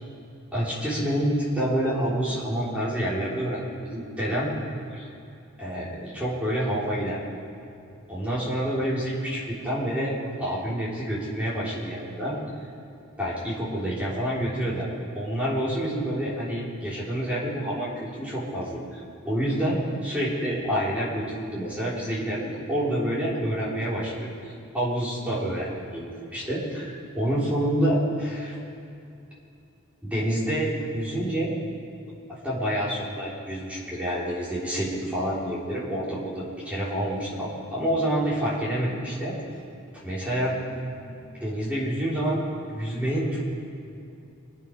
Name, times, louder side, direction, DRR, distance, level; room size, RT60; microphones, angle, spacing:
voice 1, 0.5-4.5 4.9-5.1 5.6-7.2 8.1-12.4 13.2-14.9 15.1-28.6 30.0-31.5 32.3-39.4 40.0-40.6 41.4-42.4 42.7-43.4, right 1 dB, 5° right, -8 dB, 3.5 m, -28 dB
24.0 x 8.9 x 5.2 m, 2.6 s
head